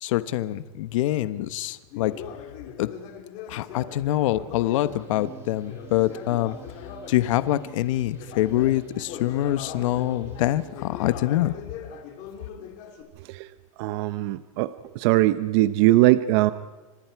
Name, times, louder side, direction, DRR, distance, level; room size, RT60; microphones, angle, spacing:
voice 1, 0.0-2.1 2.8-2.9 3.5-6.6 7.1-11.5, left 14 dB, 65° left, 13 dB, 1.2 m, -25 dB
Conversation, 1.9-7.6 8.1-13.0, left 8 dB, 45° left, 4.1 m, -41 dB
sound 1, 4.8-10.7, right 5 dB, 15° right, 6.7 m, -46 dB
voice 2, 13.8-16.5, right 16 dB, 50° right, 13 dB, 0.9 m, -21 dB
30.0 x 26.5 x 4.8 m, 1.3 s
supercardioid pair, 150°, 18 cm